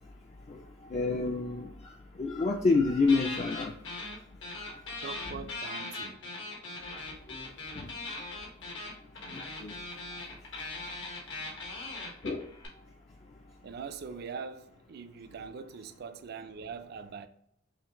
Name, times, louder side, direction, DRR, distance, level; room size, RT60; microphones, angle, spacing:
voice 1, 0.9-1.7 2.2-3.7 4.6-4.7 7.8-7.9 9.6-9.7 12.2-12.5, left 3 dB, 35° left, 0.4 m, -27 dB
sound 1, 3.1-4.2 4.4-12.7, left 2 dB, 80° left, 1.4 m, -40 dB
voice 2, 5.0-6.2 13.6-17.3, right 5 dB, 55° right, 0.4 m, -42 dB
5.7 x 2.5 x 2.9 m
head